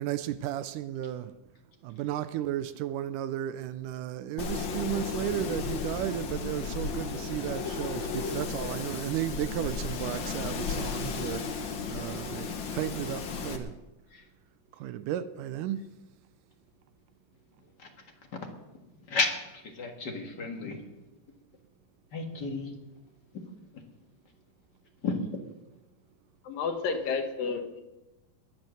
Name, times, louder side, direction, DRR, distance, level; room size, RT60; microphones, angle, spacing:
voice 1, 0.0-1.3 1.8-13.8 14.8-15.8, right 12 dB, 80° right, 2.0 m, -34 dB
Wind, 4.4-13.6, left 5 dB, 60° left, 1.3 m, -34 dB
voice 2, 19.1-20.8 22.1-22.7 25.0-25.1, left 3 dB, 40° left, 1.7 m, -32 dB
voice 3, 26.4-27.8, left 5 dB, 90° left, 3.1 m, -31 dB
21.5 x 7.7 x 6.4 m
omnidirectional pair, 3.9 m